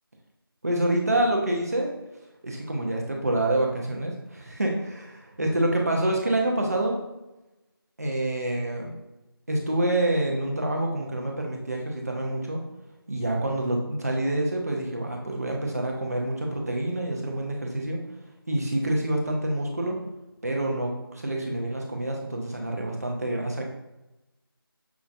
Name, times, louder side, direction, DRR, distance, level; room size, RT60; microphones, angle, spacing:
voice 1, 0.6-1.9 2.4-7.0 8.0-8.9 9.5-12.6 13.1-18.0 18.5-20.0 20.4-23.7, right 1 dB, 40° right, 0 dB, 0.8 m, -27 dB
5.8 x 3.0 x 2.6 m, 0.98 s
figure-of-eight pair, 170°, 13 cm